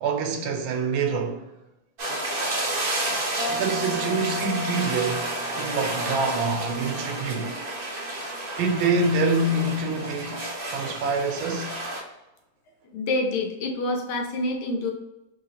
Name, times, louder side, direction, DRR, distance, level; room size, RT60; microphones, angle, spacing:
voice 1, 0.0-1.5 3.5-7.6 8.6-11.7, right 3 dB, 80° right, 1.4 m, -26 dB
sound 1, 2.0-12.0, right 1 dB, 50° right, 0.6 m, -31 dB
sound 2, 3.3-10.0, equal, 35° left, 1.0 m, -38 dB
voice 2, 12.9-14.9, left 2 dB, 80° left, 1.6 m, -27 dB
3.4 x 2.8 x 4.0 m
omnidirectional pair, 2.3 m